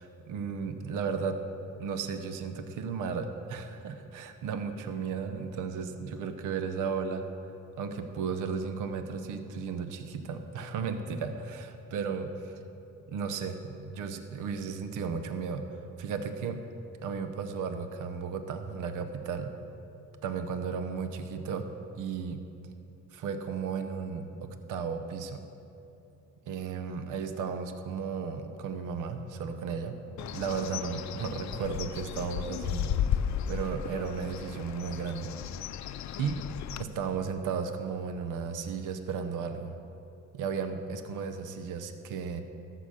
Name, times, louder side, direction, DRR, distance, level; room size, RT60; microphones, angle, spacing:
voice 1, 0.0-1.4 1.8-7.2 7.8-12.6 13.1-15.6 16.0-16.6 17.0-19.5 20.2-21.7 22.0-22.4 23.1-25.4 26.5-30.0 30.3-32.9 33.5-35.3 36.2-36.5 36.8-39.7 40.3-42.4, right 6 dB, 90° right, 8 dB, 0.8 m, -34 dB
Bird, 30.2-36.8, left 9 dB, 65° left, 0.5 m, -34 dB
13.5 x 5.8 x 6.4 m, 2.9 s
cardioid pair, 90°, 30 cm